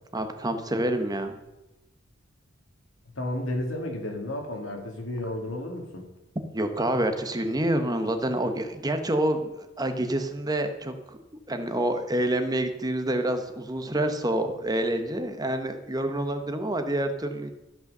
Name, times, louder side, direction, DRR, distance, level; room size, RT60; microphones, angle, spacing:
voice 1, 0.1-1.4 6.5-11.2 11.5-17.5, right 1 dB, 20° right, 7 dB, 0.9 m, -27 dB
voice 2, 3.2-6.1, left 1 dB, 80° left, 2 dB, 2.2 m, -32 dB
13.5 x 5.5 x 6.6 m, 0.99 s
head